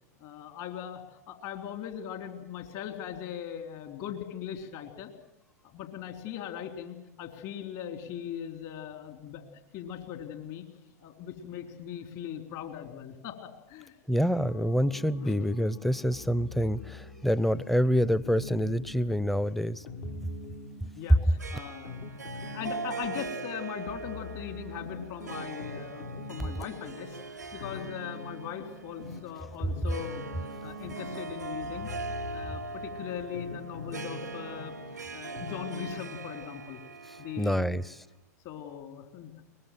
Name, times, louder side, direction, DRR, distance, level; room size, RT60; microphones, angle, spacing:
voice 1, 0.2-5.1 5.7-9.4 9.7-10.7 11.0-14.0 15.2-15.3 20.8-22.0 22.3-27.2 27.5-30.2 30.6-31.9 32.3-34.7 35.1-36.8 37.2-37.8 38.4-39.3, left 9 dB, 50° left, 6 dB, 3.7 m, -40 dB
voice 2, 14.1-19.9 37.4-38.0, equal, ahead, 18 dB, 0.7 m, -27 dB
sound 1, 14.4-19.4, left 2 dB, 85° left, 4.8 m, -51 dB
sound 2, 16.1-36.0, left 3 dB, 65° left, 2.0 m, -44 dB
Harp, 21.4-38.1, right 4 dB, 85° right, 0.9 m, -41 dB
23.0 x 20.5 x 7.6 m, 0.86 s
figure-of-eight pair, 90°, 9 cm